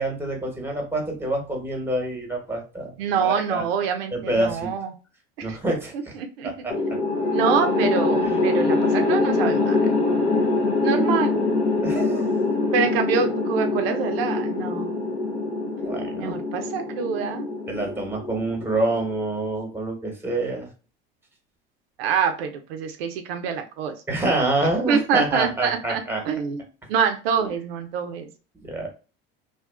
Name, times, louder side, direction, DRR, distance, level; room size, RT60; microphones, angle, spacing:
voice 1, 0.0-3.6 4.1-4.7 5.4-6.1 6.4-6.7 8.2-8.4 11.8-12.4 15.8-16.4 17.7-20.7 24.1-26.2 28.6-28.9, right 2 dB, 10° right, 1 dB, 1.0 m, -27 dB
voice 2, 3.0-4.9 5.4-5.6 5.9-6.7 7.3-9.8 10.8-11.4 12.7-15.0 16.2-17.5 22.0-24.0 24.9-26.6 26.9-28.3, right 6 dB, 80° right, 6 dB, 0.5 m, -25 dB
sound 1, 6.7-19.0, left 3 dB, 75° left, 0.8 m, -24 dB
2.5 x 2.2 x 2.3 m, 0.34 s
hypercardioid pair, 80°, 29 cm